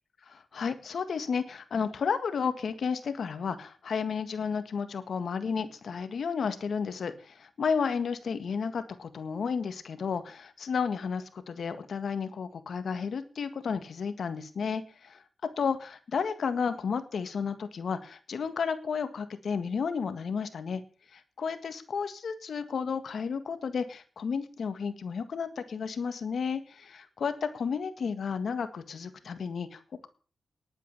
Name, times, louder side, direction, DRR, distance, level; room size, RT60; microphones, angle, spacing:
voice 1, 0.3-20.8 21.1-30.1, left 6 dB, 75° left, 10 dB, 1.7 m, -32 dB
11.0 x 9.1 x 6.8 m, 0.38 s
cardioid pair, 60°, 0 cm